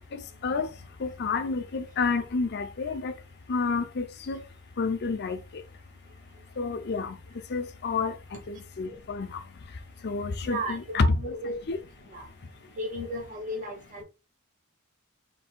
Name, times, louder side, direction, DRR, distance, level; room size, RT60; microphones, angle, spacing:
voice 1, 0.1-0.7 1.0-3.1 3.5-4.4 4.8-5.4 6.6-7.2 7.5-9.4 10.0-11.3 11.7-11.8, left 4 dB, 50° left, 0.6 m, -29 dB
voice 2, 10.4-11.1 11.4-11.6 12.1-12.2 12.8-14.0, right 1 dB, 35° right, 1.0 m, -34 dB
3.3 x 2.7 x 4.3 m
head